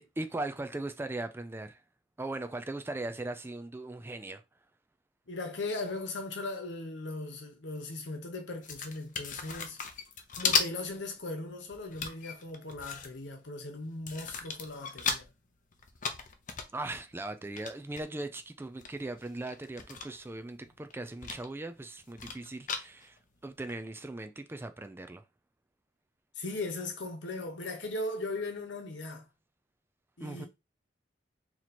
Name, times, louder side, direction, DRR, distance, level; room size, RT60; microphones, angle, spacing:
voice 1, 0.0-1.8 2.2-4.4 16.7-25.2 30.2-30.5, right 2 dB, 15° right, 0.3 m, -39 dB
voice 2, 5.3-9.8 10.3-15.3 26.4-29.3 30.2-30.5, left 2 dB, 75° left, 1.0 m, -38 dB
sound 1, 8.6-11.0 11.3-13.4 13.9-15.3 15.7-18.0 18.5-18.6 18.8-20.4 20.6-21.5 21.8-23.2 23.7-23.8, left 5 dB, 45° left, 0.6 m, -35 dB
3.0 x 2.9 x 4.2 m
head